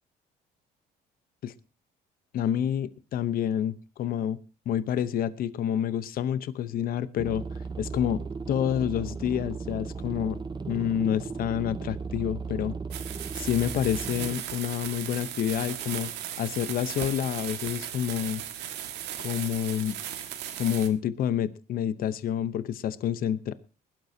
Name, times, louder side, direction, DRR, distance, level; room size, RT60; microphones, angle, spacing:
voice 1, 2.3-4.4 4.7-7.4 7.8-10.4 10.7-12.7 13.3-16.1 16.4-18.4 19.2-20.0 20.6-23.5, left 10 dB, 60° left, 15 dB, 0.9 m, -28 dB
sound 1, 7.2-14.4, right 4 dB, 25° right, 0.8 m, -36 dB
sound 2, 12.9-20.9, right 11 dB, 85° right, 1.9 m, -37 dB
21.0 x 12.0 x 2.8 m, 0.31 s
cardioid pair, 110°, 17 cm